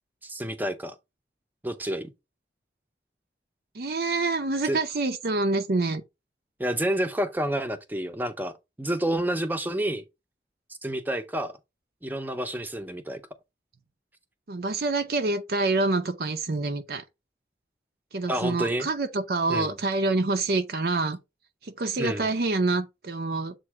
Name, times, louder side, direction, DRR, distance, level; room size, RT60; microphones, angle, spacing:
voice 1, 0.2-1.0 1.6-2.1 4.6-4.8 6.6-10.0 10.8-11.5 12.0-13.2 18.3-18.9 19.5-19.8 22.0-22.3, right 1 dB, 10° right, 0.7 m, -29 dB
voice 2, 3.7-6.0 14.5-17.0 18.1-21.2 21.6-23.5, right 3 dB, 55° right, 0.6 m, -26 dB
7.6 x 2.6 x 4.7 m
head